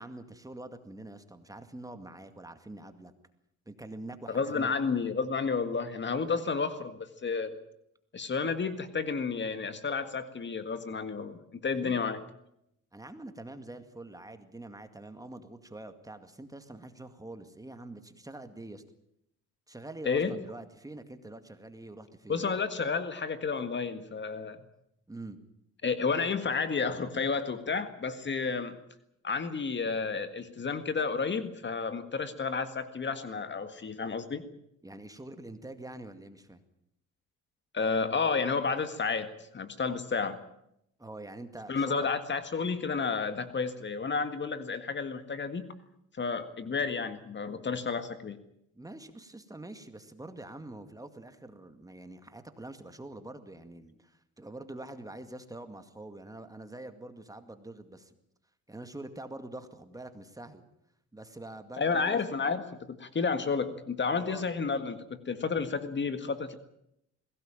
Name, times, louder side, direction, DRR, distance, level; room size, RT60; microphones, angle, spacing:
voice 1, 0.0-3.1 3.7-4.7 6.2-6.4 11.7-12.0 12.9-18.8 19.7-22.5 25.1-25.4 34.8-36.6 41.0-42.1 48.7-58.1 58.7-60.6 61.1-62.2 64.1-64.4, right 2 dB, 10° right, 9 dB, 2.1 m, -45 dB
voice 2, 4.3-7.6 8.1-12.2 20.0-20.4 22.3-24.6 25.8-28.7 29.2-34.4 37.7-40.4 41.7-45.7 46.1-48.4 61.8-65.0 65.3-66.5, left 5 dB, 40° left, 10 dB, 1.8 m, -31 dB
21.5 x 17.0 x 8.9 m, 0.78 s
cardioid pair, 95°, 30 cm